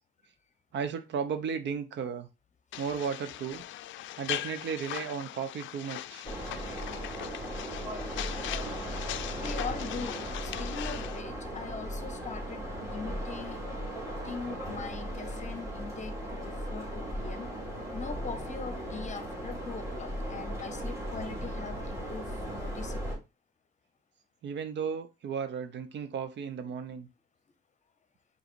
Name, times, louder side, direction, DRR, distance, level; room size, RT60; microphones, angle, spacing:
voice 1, 0.7-2.3 2.8-3.6 4.2-6.3 24.4-27.1, right 6 dB, 65° right, 0.8 m, -34 dB
sound 1, 2.7-11.2, left 13 dB, 75° left, 0.4 m, -40 dB
sound 2, 6.2-23.2, equal, 15° right, 2.6 m, -37 dB
voice 2, 9.4-13.6 14.2-17.5 17.9-23.2, left 5 dB, 35° left, 0.8 m, -41 dB
4.9 x 4.0 x 2.5 m
cardioid pair, 90°, 20 cm